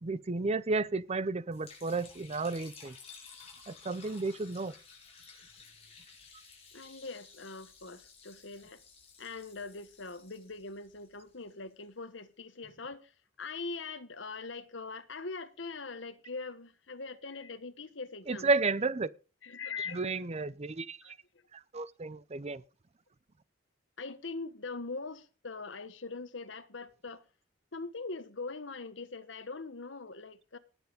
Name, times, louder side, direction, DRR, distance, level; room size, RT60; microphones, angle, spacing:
voice 1, 0.0-3.0 3.7-4.7 18.3-19.1 19.9-21.1 21.5-22.6, right 3 dB, 35° right, 0.6 m, -32 dB
Liquid, 1.5-11.7, left 5 dB, 35° left, 5.5 m, -55 dB
voice 2, 6.7-8.8 9.2-18.5 19.4-20.3 21.0-21.2 24.0-27.2 27.7-30.6, left 4 dB, 70° left, 1.3 m, -42 dB
18.5 x 7.3 x 5.1 m
head